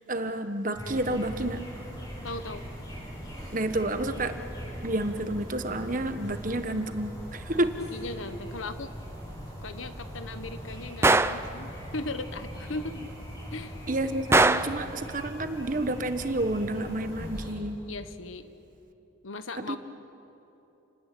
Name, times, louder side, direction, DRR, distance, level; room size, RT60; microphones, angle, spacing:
voice 1, 0.1-1.6 3.5-4.3 4.8-7.7 13.9-17.8 19.6-19.8, right 1 dB, 40° right, 8 dB, 1.4 m, -30 dB
sound 1, 0.7-17.5, equal, 20° left, 7.6 m, -40 dB
voice 2, 2.2-2.7 7.5-8.9 9.6-13.1 13.5-13.9 17.9-18.5 19.2-19.8, left 2 dB, 85° left, 10 dB, 1.4 m, -38 dB
Gunshot gunfire, 11.0-11.5 14.3-14.8, right 2 dB, 15° right, 0.5 m, -20 dB
29.5 x 20.0 x 8.6 m, 3.0 s
head